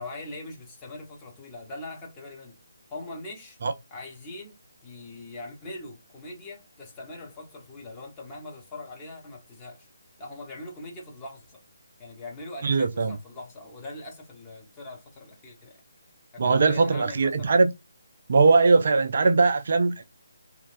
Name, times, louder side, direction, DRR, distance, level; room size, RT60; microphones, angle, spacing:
voice 1, 0.0-2.6 2.9-3.6 3.9-4.5 4.8-9.9 10.2-11.6 12.0-15.8 16.3-17.7, left 2 dB, 15° left, 0.8 m, -41 dB
voice 2, 12.6-13.2 16.4-17.7 18.3-20.0, right 4 dB, 45° right, 0.3 m, -20 dB
3.0 x 2.3 x 2.4 m
figure-of-eight pair, 145°, 0 cm